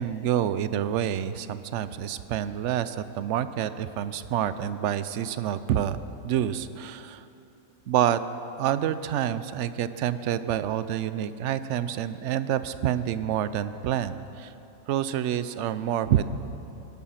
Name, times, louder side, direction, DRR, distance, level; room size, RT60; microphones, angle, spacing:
voice 1, 0.0-7.3 7.9-8.2 8.6-14.5 14.9-16.2, right 10 dB, 65° right, 13 dB, 0.8 m, -28 dB
18.0 x 12.5 x 5.8 m, 3.0 s
omnidirectional pair, 1.5 m